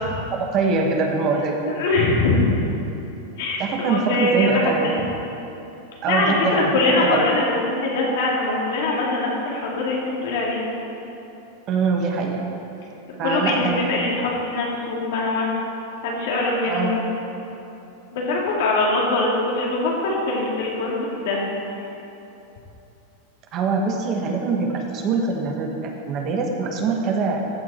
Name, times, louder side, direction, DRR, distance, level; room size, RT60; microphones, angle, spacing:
voice 1, 0.3-1.8 3.6-5.0 6.0-6.7 7.0-7.2 11.7-12.5 13.2-13.8 16.6-17.0 23.5-27.4, right 4 dB, 35° right, 2 dB, 1.2 m, -23 dB
voice 2, 1.7-2.5 3.4-5.0 6.1-10.6 13.2-15.5 16.0-17.0 18.1-21.4, left 2 dB, 70° left, -3 dB, 2.6 m, -22 dB
14.5 x 6.3 x 4.3 m, 2.9 s
supercardioid pair, 135°, 0 cm